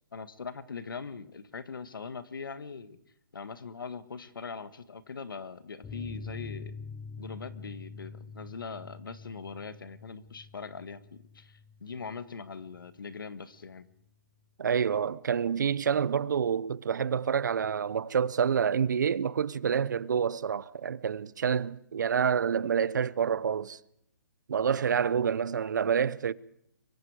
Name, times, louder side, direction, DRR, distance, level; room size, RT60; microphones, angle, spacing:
voice 1, 0.1-3.0 3.3-6.7 7.2-13.9, left 5 dB, 85° left, 1.6 m, -41 dB
sound 1, 5.8-12.9 13.2-13.3 13.6-13.7, left 4 dB, 10° left, 1.0 m, -45 dB
voice 2, 14.6-23.8 24.5-26.3, right 7 dB, 60° right, 0.8 m, -28 dB
24.0 x 23.5 x 4.9 m
hypercardioid pair, 165°, 11 cm